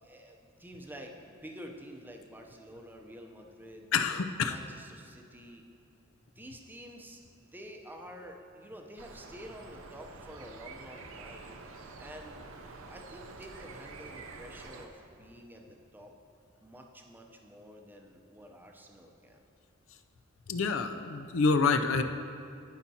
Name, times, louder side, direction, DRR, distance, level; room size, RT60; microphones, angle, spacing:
voice 1, 0.0-3.9 4.5-5.6 6.4-11.5 12.0-12.5 12.9-16.1 16.6-19.4, equal, 10° right, 1 dB, 0.6 m, -49 dB
voice 2, 3.9-4.6 20.5-22.0, left 4 dB, 70° left, 7 dB, 0.5 m, -27 dB
sound 1, 9.0-14.9, right 3 dB, 75° right, 0.6 m, -47 dB
15.5 x 5.7 x 2.8 m, 2.4 s
head